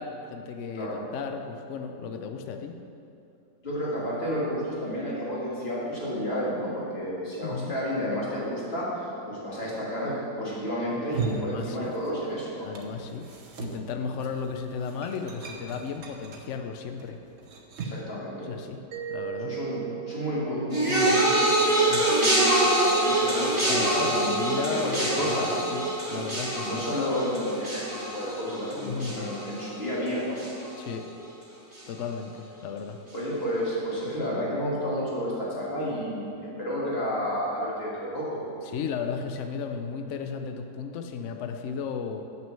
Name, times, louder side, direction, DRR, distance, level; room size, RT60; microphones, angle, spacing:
voice 1, 0.0-2.7 7.4-7.7 11.3-11.9 12.6-13.3 13.6-17.2 18.4-18.8 19.1-19.6 21.9-22.0 23.7-25.8 26.1-26.8 28.7-29.3 30.8-31.1 31.9-33.0 38.6-42.2, left 6 dB, 90° left, 6 dB, 0.6 m, -35 dB
voice 2, 3.6-12.7 17.8-18.5 19.4-25.6 26.1-26.2 26.6-30.4 33.1-38.4, equal, 35° left, -7 dB, 2.5 m, -31 dB
sound 1, 10.9-12.3 12.6-18.1, right 5 dB, 55° right, 1.1 m, -38 dB
Mallet percussion, 18.9-23.5, right 12 dB, 85° right, 1.5 m, -40 dB
sound 2, 20.7-30.1 30.4-30.9 31.7-31.8, right 1 dB, 15° right, 2.0 m, -25 dB
7.4 x 6.1 x 7.1 m, 2.7 s
omnidirectional pair, 1.9 m